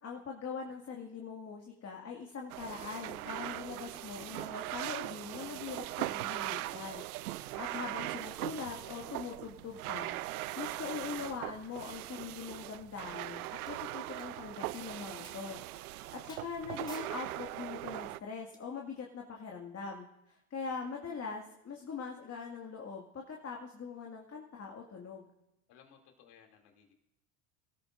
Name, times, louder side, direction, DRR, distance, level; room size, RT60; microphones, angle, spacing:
voice 1, 0.0-10.2 10.6-15.6 15.9-25.3, left 5 dB, 35° left, 0 dB, 2.1 m, -42 dB
sound 1, 2.5-18.2, right 17 dB, 85° right, 0.5 m, -40 dB
voice 2, 7.4-7.8 16.0-16.3 25.7-26.9, left 7 dB, 60° left, 2 dB, 2.9 m, -62 dB
sound 2, 13.7-13.8 14.2-14.3 14.7-14.8 15.2-15.4 15.8-15.9 16.3-16.5 16.9-17.1 18.5-18.6, left 2 dB, 10° left, 2.6 m, -52 dB
23.5 x 13.5 x 2.6 m, 0.90 s
hypercardioid pair, 80°, 43 cm